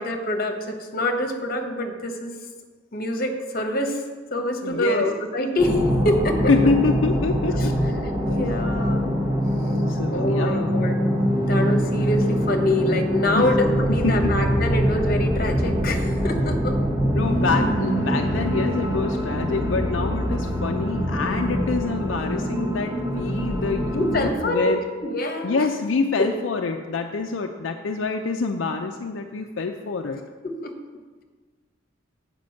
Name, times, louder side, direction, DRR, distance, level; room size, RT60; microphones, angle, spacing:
voice 1, 0.0-2.3 2.9-4.0 4.3-6.5 7.6-7.7 8.3-9.1 10.1-11.1 11.4-16.8 23.9-24.7 25.0-25.7 26.2-26.3 30.4-30.7, left 1 dB, 50° left, 4 dB, 1.1 m, -25 dB
voice 2, 4.4-5.1 6.5-7.7 9.9-10.8 13.3-13.5 14.0-14.3 17.1-24.8 25.4-30.2, left 4 dB, 80° left, 4 dB, 0.5 m, -26 dB
sound 1, 5.6-24.3, equal, 20° right, 1.1 m, -24 dB
8.3 x 5.2 x 6.4 m, 1.4 s
head